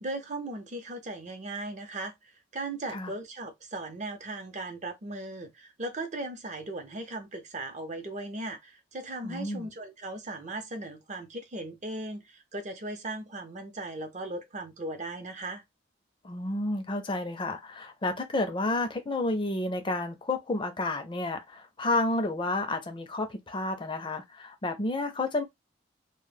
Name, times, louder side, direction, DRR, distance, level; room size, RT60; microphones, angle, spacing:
voice 1, 0.0-15.6, right 2 dB, 40° right, 0.6 m, -38 dB
voice 2, 9.2-9.7 16.2-25.4, left 2 dB, 25° left, 0.4 m, -31 dB
2.1 x 2.0 x 3.2 m
head